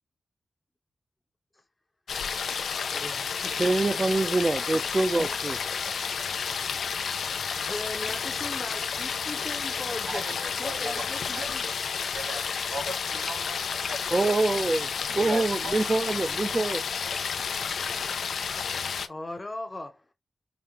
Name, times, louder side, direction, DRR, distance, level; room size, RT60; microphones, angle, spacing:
sound 1, 2.1-19.1, left 6 dB, 85° left, 0.4 m, -31 dB
voice 1, 2.5-4.5 5.1-5.4 5.8-6.0 7.6-10.2 10.6-11.7 17.8-17.9 19.1-20.1, left 2 dB, 25° left, 0.7 m, -39 dB
voice 2, 3.6-5.6 14.1-16.8, right 2 dB, 25° right, 0.4 m, -25 dB
voice 3, 10.1-10.9 11.4-11.5 12.1-14.4 15.1-15.8, right 1 dB, 75° right, 2.3 m, -38 dB
5.0 x 2.2 x 2.9 m
wide cardioid pair, 100°, 0 cm